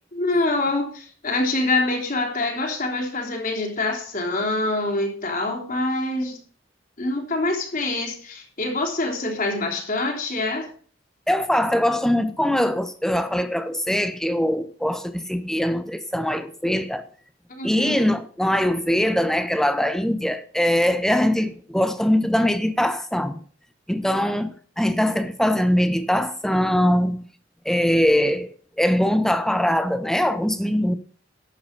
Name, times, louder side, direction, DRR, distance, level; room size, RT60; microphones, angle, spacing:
voice 1, 0.1-6.4 7.0-10.7 17.5-18.1, left 2 dB, 45° left, 3.3 m, -25 dB
voice 2, 11.3-17.1 17.6-23.4 23.9-27.3 27.6-28.5 28.8-30.9, equal, 5° left, 1.0 m, -22 dB
12.0 x 8.1 x 5.2 m
head